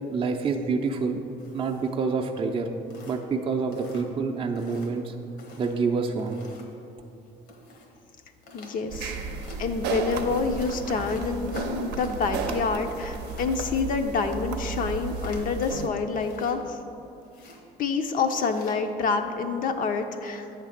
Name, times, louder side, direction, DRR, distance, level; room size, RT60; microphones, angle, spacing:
voice 1, 0.1-1.2 1.5-2.7 3.1-5.2 5.6-6.4, right 4 dB, 30° right, 3 dB, 0.5 m, -27 dB
sound 1, 1.4-2.1 2.5-2.6 2.9-3.4 3.7-4.2 4.5-5.0 5.4-6.8 7.5-7.9 8.4-8.7 9.4-9.6 10.5-12.6 12.9-13.5 15.0-15.6 16.1-16.9 17.2-17.6 18.3-18.7, left 1 dB, 80° left, 1.2 m, -45 dB
voice 2, 8.5-9.3 9.6-16.8 17.8-20.5, left 4 dB, 55° left, 5 dB, 0.5 m, -27 dB
sound 2, 8.9-15.9, right 4 dB, 85° right, 0.6 m, -34 dB
8.1 x 3.3 x 6.4 m, 2.7 s
cardioid pair, 110°, 17 cm